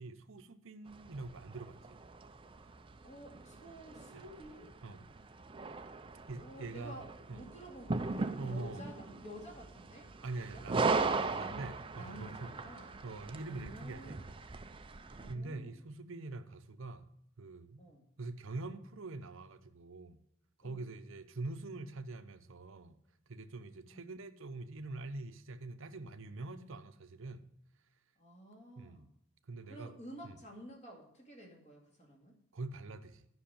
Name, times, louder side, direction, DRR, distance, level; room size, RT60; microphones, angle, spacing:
voice 1, 0.0-2.0 4.1-4.2 4.8-5.1 6.3-7.0 7.3-7.5 8.4-8.8 10.2-12.5 13.0-14.2 15.3-17.1 17.4-17.8 18.2-20.2 20.6-22.9 23.3-27.5 28.8-29.1 29.5-29.9 30.2-30.4 32.5-33.3, right 3 dB, 60° right, 0.7 m, -44 dB
sound 1, 0.9-15.4, right 4 dB, 25° right, 0.5 m, -39 dB
voice 2, 2.6-4.7 6.4-10.7 11.3-11.6 12.0-12.9 13.5-14.3 15.2-15.8 17.8-18.1 20.6-20.8 23.9-24.0 28.2-29.1 29.7-32.4, equal, 30° left, 2.3 m, -51 dB
10.5 x 6.1 x 6.9 m
head